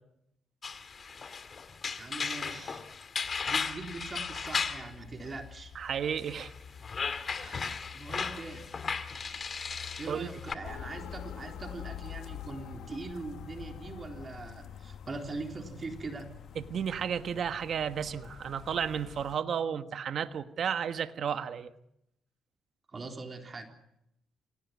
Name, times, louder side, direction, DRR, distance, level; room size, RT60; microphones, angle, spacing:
sound 1, 0.6-4.9 6.2-10.5, left 5 dB, 40° left, 2.0 m, -36 dB
voice 1, 2.0-2.8 3.5-5.7 7.9-8.7 10.0-16.3 22.9-23.7, right 3 dB, 35° right, 3 dB, 3.8 m, -41 dB
sound 2, 3.2-19.4, left 7 dB, 60° left, 1.3 m, -50 dB
voice 2, 5.7-6.5 7.4-7.6 10.1-10.3 16.7-21.7, right 7 dB, 60° right, 10 dB, 1.3 m, -33 dB
sound 3, 10.6-17.1, left 11 dB, 80° left, 1.1 m, -46 dB
26.5 x 18.0 x 9.6 m, 0.82 s
cardioid pair, 90°, 0 cm